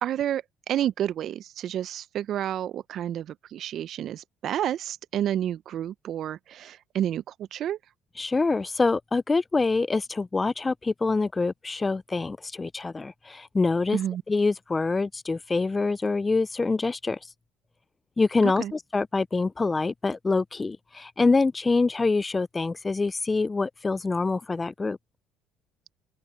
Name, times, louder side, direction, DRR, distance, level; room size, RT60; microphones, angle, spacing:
voice 1, 0.0-7.8 13.9-14.2 18.4-18.7, right 11 dB, 55° right, 1.0 m, -30 dB
voice 2, 8.2-14.0 14.3-17.2 18.2-25.0, left 3 dB, 25° left, 0.7 m, -25 dB
open air
hypercardioid pair, 60°, 0 cm